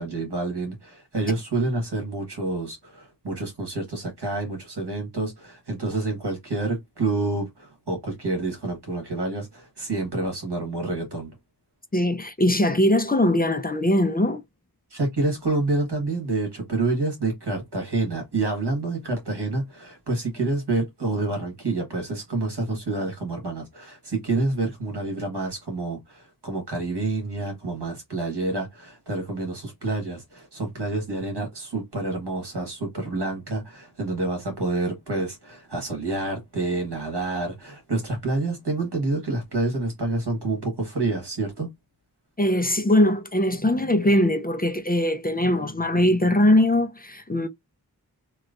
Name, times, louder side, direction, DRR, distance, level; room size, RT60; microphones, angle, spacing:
voice 1, 0.0-11.3 14.9-41.7, right 2 dB, 85° right, 1.7 m, -28 dB
voice 2, 11.9-14.4 42.4-47.5, left 1 dB, 25° left, 0.6 m, -21 dB
3.1 x 3.0 x 2.5 m
wide cardioid pair, 45°, 39 cm